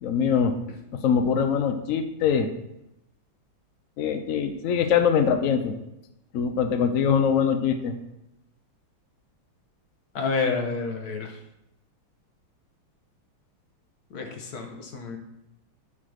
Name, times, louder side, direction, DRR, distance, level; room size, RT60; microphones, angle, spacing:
voice 1, 0.0-0.6 0.9-2.5 4.0-5.8 6.3-7.9, left 7 dB, 85° left, 7 dB, 0.7 m, -23 dB
voice 2, 10.1-11.4 14.1-15.2, left 4 dB, 55° left, 4 dB, 1.4 m, -29 dB
8.4 x 3.7 x 6.3 m, 0.88 s
omnidirectional pair, 2.2 m